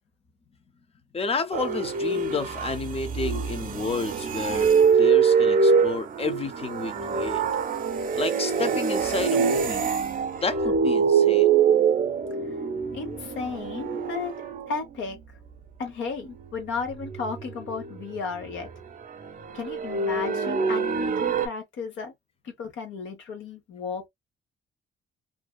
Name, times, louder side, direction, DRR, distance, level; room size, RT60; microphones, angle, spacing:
voice 1, 1.1-7.4 8.1-9.9 10.4-11.5, left 4 dB, 30° left, 0.6 m, -31 dB
sound 1, 1.5-14.8 16.9-18.7 19.0-21.5, right 6 dB, 45° right, 0.6 m, -24 dB
voice 2, 12.9-14.3 14.7-15.2 15.8-18.7 19.5-22.1 22.4-24.1, left 5 dB, 75° left, 0.8 m, -34 dB
2.6 x 2.2 x 2.2 m
cardioid pair, 90°, 20 cm